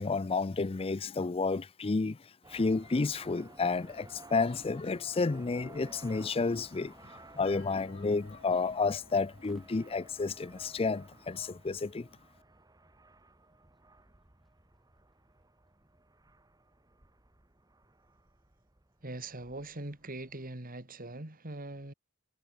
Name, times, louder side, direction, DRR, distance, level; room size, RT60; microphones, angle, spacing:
voice 1, 0.0-2.2 2.5-6.9 7.3-12.1, left 4 dB, 25° left, 0.5 m, -31 dB
sound 1, 2.4-20.5, right 2 dB, 20° right, 1.5 m, -57 dB
sound 2, 7.5-11.3, left 5 dB, 70° left, 2.4 m, -58 dB
Crowd / Fireworks, 9.4-16.7, equal, ahead, 7.8 m, -70 dB
voice 2, 19.0-21.9, right 2 dB, 40° right, 2.5 m, -42 dB
head